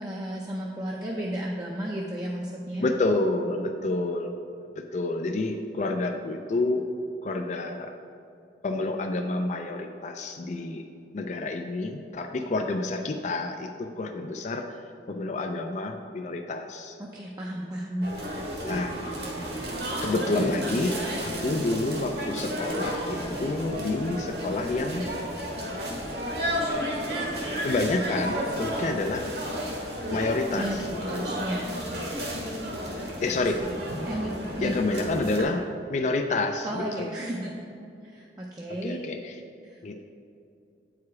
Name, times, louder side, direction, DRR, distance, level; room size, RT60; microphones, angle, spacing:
voice 1, 0.0-2.9 17.0-18.1 18.5-18.7 30.6-31.8 34.0-34.3 34.6-34.7 36.6-37.6 38.0-39.0 39.6-39.8, equal, 20° right, -2 dB, 0.5 m, -33 dB
voice 2, 2.8-4.3 4.9-6.9 7.2-7.9 8.6-10.9 11.1-14.8 15.1-17.0 18.6-18.9 20.0-25.1 27.6-29.3 30.1-31.3 33.2-33.6 34.6-35.6 35.9-37.1 38.8-39.3 39.8-40.1, left 2 dB, 40° left, 5 dB, 0.4 m, -29 dB
sound 1, 18.0-35.4, equal, 60° right, 1.5 m, -32 dB
8.4 x 4.9 x 4.7 m, 2.5 s
head